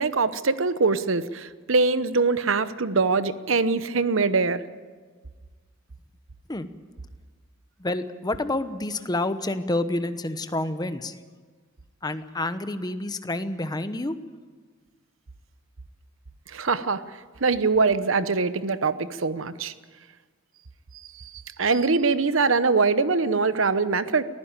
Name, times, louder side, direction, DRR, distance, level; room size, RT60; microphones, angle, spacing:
voice 1, 0.0-4.6 16.5-17.0 17.4-19.7 21.2-21.3 21.6-24.2, right 4 dB, 70° right, 13 dB, 0.9 m, -23 dB
voice 2, 7.8-11.2 12.0-14.2, left 2 dB, 20° left, 10 dB, 1.0 m, -28 dB
23.0 x 15.0 x 9.0 m, 1.5 s
head